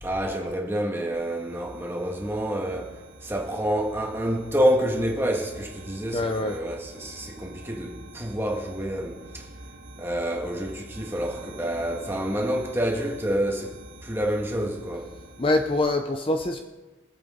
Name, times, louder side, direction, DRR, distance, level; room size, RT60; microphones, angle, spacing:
voice 1, 0.0-2.9 3.2-9.4 10.0-13.7 14.0-15.1, equal, 10° right, 1.8 m, -28 dB
sound 1, 1.1-15.8, right 2 dB, 80° right, 1.6 m, -45 dB
voice 2, 6.1-6.6 15.4-16.6, left 2 dB, 25° left, 0.7 m, -24 dB
24.0 x 8.2 x 3.7 m
head